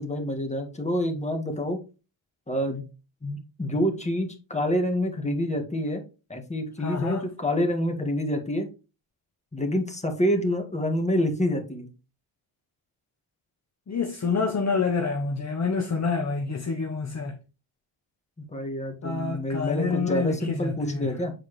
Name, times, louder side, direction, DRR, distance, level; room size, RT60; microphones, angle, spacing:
voice 1, 0.0-1.8 2.5-2.8 3.2-6.0 6.3-8.7 9.5-11.9 18.5-21.3, equal, 15° left, 1.8 m, -27 dB
voice 2, 6.8-7.2 13.9-17.4 19.0-21.1, left 4 dB, 35° left, 1.0 m, -27 dB
7.9 x 4.5 x 3.2 m
cardioid pair, 70°, 49 cm